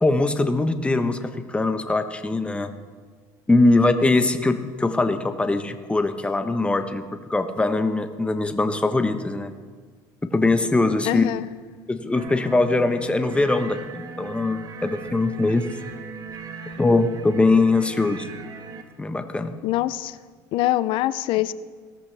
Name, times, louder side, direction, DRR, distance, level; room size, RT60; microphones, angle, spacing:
voice 1, 0.0-2.7 3.5-9.5 10.3-11.3 11.9-15.7 16.8-18.3 19.0-19.5, left 2 dB, 10° left, 8 dB, 1.1 m, -22 dB
voice 2, 11.0-11.5 19.6-20.2 20.5-21.5, left 15 dB, 65° left, 16 dB, 0.6 m, -24 dB
sound 1, 12.2-18.8, right 4 dB, 45° right, 1.5 m, -38 dB
17.5 x 13.5 x 3.4 m, 1.5 s
supercardioid pair, 90°, 9 cm